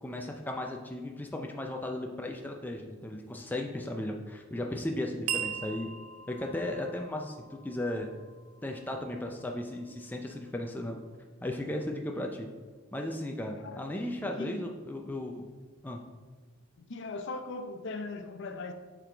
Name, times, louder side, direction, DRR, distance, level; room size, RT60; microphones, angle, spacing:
voice 1, 0.0-5.9 6.3-8.1 8.6-11.0 11.4-12.5 12.9-15.4 15.8-16.0, left 1 dB, 10° left, 0.4 m, -36 dB
sound 1, 5.3-9.9, right 8 dB, 75° right, 0.5 m, -41 dB
voice 2, 13.6-14.0 14.4-14.6 16.8-18.7, left 3 dB, 55° left, 0.5 m, -39 dB
7.6 x 4.7 x 3.3 m
head